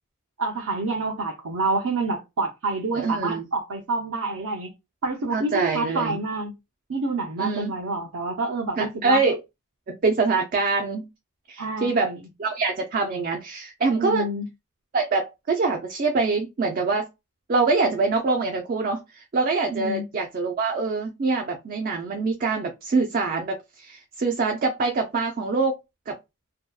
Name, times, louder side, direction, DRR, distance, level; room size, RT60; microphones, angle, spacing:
voice 1, 0.4-4.7 5.0-6.5 6.9-9.2 11.6-12.2 14.0-14.4 19.7-20.0, right 3 dB, 85° right, 0.6 m, -28 dB
voice 2, 2.9-3.5 5.3-6.2 7.4-7.7 8.8-9.4 9.9-11.0 11.5-12.1 12.4-14.3 14.9-17.1 17.5-25.8 26.1-26.2, right 3 dB, 40° right, 0.4 m, -24 dB
2.6 x 2.2 x 2.3 m
head